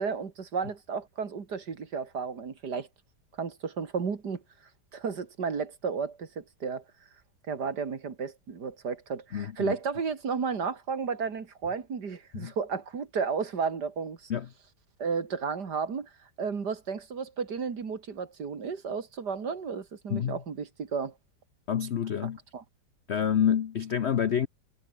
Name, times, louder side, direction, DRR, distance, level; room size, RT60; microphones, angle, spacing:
voice 1, 0.0-2.9 3.4-4.4 4.9-6.8 7.5-14.3 15.0-16.1 16.4-21.1 22.5-22.6, right 5 dB, 60° right, 2.7 m, -33 dB
voice 2, 9.3-9.7 12.3-12.5 14.3-14.5 20.1-20.4 21.7-22.4 23.1-24.5, left 8 dB, 60° left, 0.7 m, -28 dB
omnidirectional pair, 2.1 m